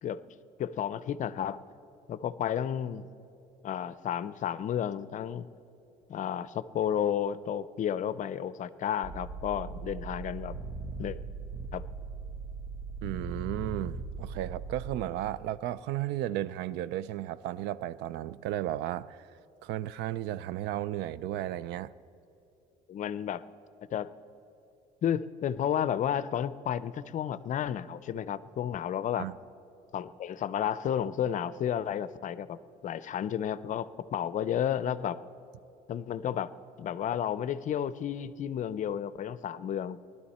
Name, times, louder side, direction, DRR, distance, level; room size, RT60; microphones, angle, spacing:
voice 1, 0.6-1.6 2.1-3.1 3.6-5.5 6.1-10.6 11.0-11.2 11.7-11.8 22.9-23.4 23.9-24.1 25.0-29.3 29.9-32.6 32.8-35.2 35.9-36.5 36.8-40.0, left 9 dB, 50° left, 16 dB, 0.5 m, -32 dB
sound 1, 9.0-15.0, right 4 dB, 65° right, 1.3 m, -39 dB
voice 2, 13.0-19.3 19.6-21.9 29.1-29.3, right 13 dB, 90° right, 19 dB, 0.4 m, -34 dB
20.0 x 12.0 x 4.2 m, 2.8 s
cardioid pair, 110°, 17 cm